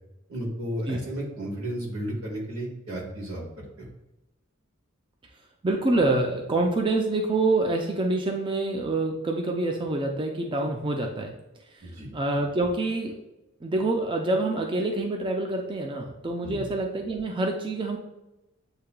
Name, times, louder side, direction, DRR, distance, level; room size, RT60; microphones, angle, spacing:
voice 1, 0.3-3.4 3.8-3.9 11.8-12.1 16.4-16.7, right 1 dB, 85° right, -3 dB, 1.6 m, -33 dB
voice 2, 5.6-11.3 12.1-13.2 13.6-18.0, right 2 dB, 25° right, 2 dB, 0.4 m, -26 dB
8.0 x 2.8 x 2.2 m, 0.96 s
head